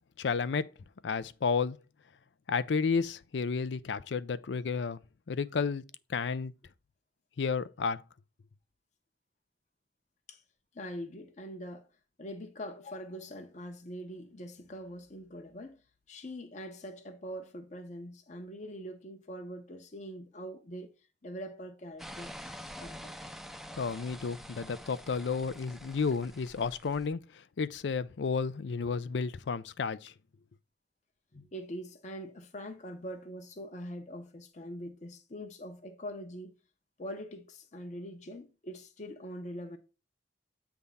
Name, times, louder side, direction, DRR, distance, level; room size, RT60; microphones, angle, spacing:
voice 1, 0.2-0.7 1.0-1.8 2.5-5.0 5.3-5.8 6.1-6.5 7.4-8.0 23.8-30.1, left 5 dB, 85° left, 0.5 m, -32 dB
voice 2, 10.7-11.9 12.2-15.8 16.1-20.9 21.2-23.2 31.3-36.5 37.0-39.8, equal, 45° left, 0.8 m, -43 dB
sound 1, 22.0-27.1, equal, ahead, 0.4 m, -47 dB
8.2 x 3.6 x 5.4 m
head